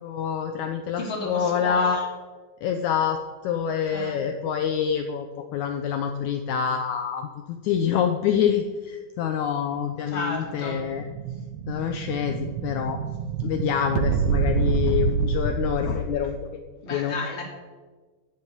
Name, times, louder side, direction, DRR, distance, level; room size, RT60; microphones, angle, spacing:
voice 1, 0.0-2.0 2.6-5.3 5.5-11.0 11.7-13.0 13.4-16.4 16.9-17.1, left 8 dB, 75° left, 5 dB, 1.9 m, -26 dB
voice 2, 1.0-2.1 3.9-4.3 10.1-10.8 16.8-17.4, left 2 dB, 25° left, 0 dB, 1.9 m, -32 dB
Explosion, 10.2-16.3, right 6 dB, 90° right, 2.4 m, -27 dB
12.0 x 6.4 x 8.1 m, 1.4 s
omnidirectional pair, 3.8 m